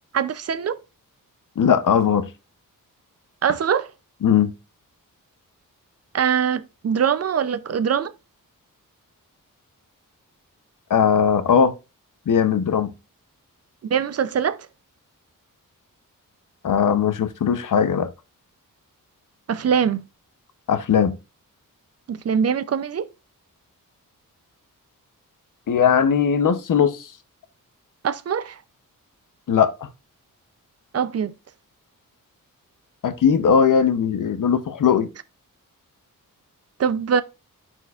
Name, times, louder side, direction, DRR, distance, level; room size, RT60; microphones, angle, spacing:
voice 1, 0.1-0.8 3.4-3.9 6.1-8.1 13.8-14.6 19.5-20.0 22.1-23.1 28.0-28.6 30.9-31.3 36.8-37.2, right 7 dB, 50° right, 0.5 m, -22 dB
voice 2, 1.6-2.3 4.2-4.5 10.9-11.7 12.3-12.9 16.6-18.1 20.7-21.1 25.7-27.1 29.5-29.9 33.0-35.1, left 7 dB, 65° left, 0.8 m, -19 dB
11.0 x 4.5 x 2.4 m
wide cardioid pair, 160°, 34 cm